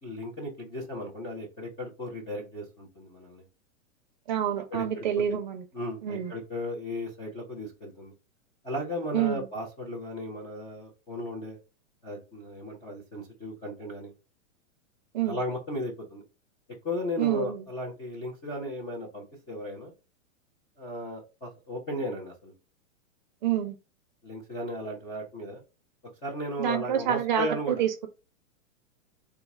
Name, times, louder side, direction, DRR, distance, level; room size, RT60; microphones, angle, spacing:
voice 1, 0.0-3.4 4.7-5.0 5.7-8.1 8.6-11.6 12.0-14.1 15.2-16.2 16.8-19.9 20.8-22.5 24.2-25.6 26.2-27.8, left 1 dB, 10° left, 0.5 m, -35 dB
voice 2, 4.3-5.6 6.0-6.3 9.1-9.5 15.1-15.4 17.2-17.6 23.4-23.8 26.6-28.1, right 10 dB, 35° right, 0.6 m, -27 dB
4.0 x 2.4 x 4.1 m
supercardioid pair, 170°, 40 cm